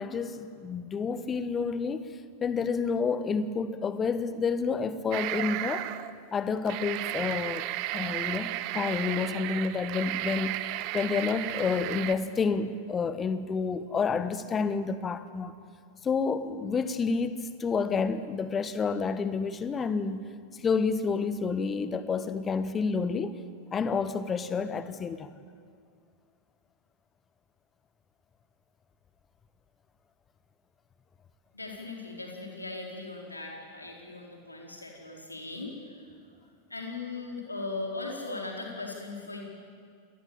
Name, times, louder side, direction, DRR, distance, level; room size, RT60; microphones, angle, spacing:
voice 1, 0.0-5.9 6.3-7.7 7.9-10.6 10.9-15.5 16.0-20.3 20.6-23.3 23.7-25.3, left 5 dB, 20° left, 1.4 m, -29 dB
sound 1, 5.1-6.1 6.5-12.1, right 15 dB, 45° right, 1.0 m, -34 dB
voice 2, 31.5-35.7 36.7-39.4, left 3 dB, 80° left, 4.6 m, -38 dB
27.5 x 19.5 x 8.9 m
figure-of-eight pair, 90°, 0 cm